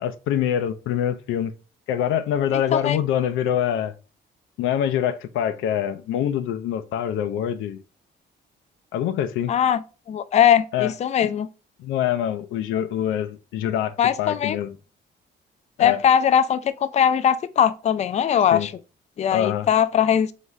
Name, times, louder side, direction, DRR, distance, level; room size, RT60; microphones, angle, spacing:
voice 1, 0.0-1.5 1.9-3.9 4.6-7.8 8.9-9.5 10.7-10.9 11.2-11.3 11.8-14.7 15.8-16.0 18.5-18.7 19.3-19.7, left 10 dB, 90° left, 0.5 m, -25 dB
voice 2, 2.5-3.0 9.5-9.8 10.1-11.5 14.0-14.6 15.8-18.7 19.2-20.3, left 9 dB, 35° left, 0.4 m, -20 dB
4.1 x 3.5 x 3.1 m
cardioid pair, 90°, 20 cm